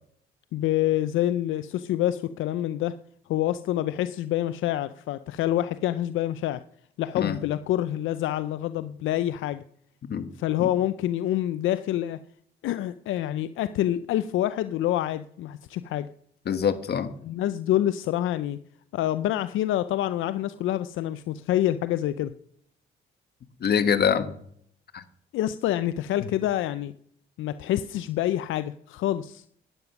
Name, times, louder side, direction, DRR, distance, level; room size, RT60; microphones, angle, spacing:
voice 1, 0.5-3.0 3.3-6.6 7.0-9.6 10.4-12.2 12.6-16.1 17.2-18.6 18.9-22.3 25.3-26.9 27.4-29.4, left 13 dB, 80° left, 13 dB, 0.5 m, -27 dB
voice 2, 16.4-17.1 23.6-24.3 24.9-25.0, left 7 dB, 55° left, 10 dB, 1.4 m, -24 dB
12.0 x 9.6 x 5.9 m, 0.66 s
cardioid pair, 90°, 20 cm